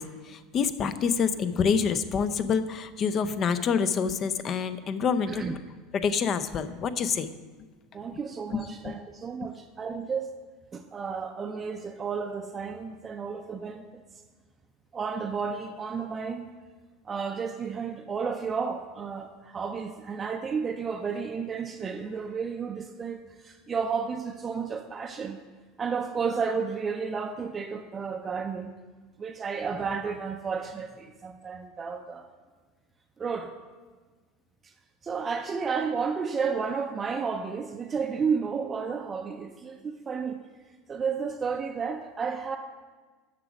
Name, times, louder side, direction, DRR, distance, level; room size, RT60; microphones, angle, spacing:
voice 1, 0.0-5.4 5.9-7.3 8.1-8.2 8.5-8.9, left 6 dB, 35° left, 12 dB, 0.5 m, -27 dB
voice 2, 7.9-10.3 10.7-14.0 14.9-16.5 17.0-25.4 25.8-28.7 29.2-32.3 33.2-33.5 35.0-40.4 40.9-42.6, right 5 dB, 25° right, 5 dB, 0.5 m, -32 dB
7.6 x 6.0 x 6.0 m, 1.4 s
supercardioid pair, 125°, 0 cm